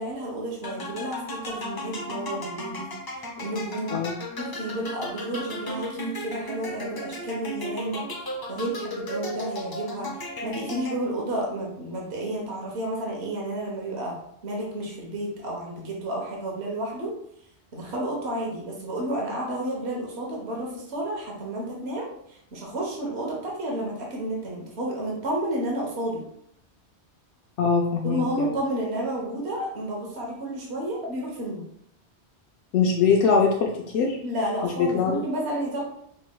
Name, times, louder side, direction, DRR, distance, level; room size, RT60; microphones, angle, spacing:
voice 1, 0.0-2.9 3.4-4.0 4.4-14.1 14.4-17.1 17.7-26.2 28.0-31.6 34.2-35.8, right 1 dB, 70° right, -2 dB, 1.3 m, -31 dB
sound 1, 0.6-11.3, left 1 dB, 35° left, 0.3 m, -35 dB
voice 2, 27.6-28.5 32.7-34.2 34.6-35.2, left 5 dB, 80° left, 0 dB, 0.9 m, -22 dB
5.3 x 3.1 x 2.2 m, 0.73 s
omnidirectional pair, 1.2 m